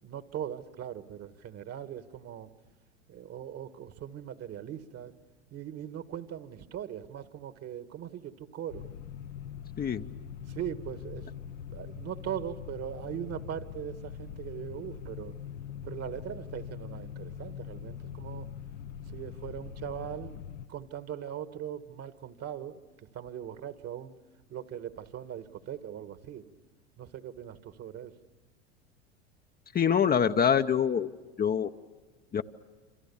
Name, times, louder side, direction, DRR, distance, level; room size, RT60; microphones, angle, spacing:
voice 1, 0.0-2.5 3.1-5.1 5.5-8.8 10.5-15.3 15.8-18.5 19.1-20.4 20.7-22.8 23.1-24.1 24.5-26.5 27.0-28.1, right 10 dB, 45° right, 11 dB, 1.6 m, -40 dB
sound 1, 8.7-20.7, left 8 dB, 80° left, 1.1 m, -42 dB
voice 2, 29.7-31.1 31.4-31.7 32.3-32.4, left 8 dB, 25° left, 7 dB, 0.8 m, -25 dB
27.5 x 26.0 x 7.1 m, 1.3 s
hypercardioid pair, 85°, 36 cm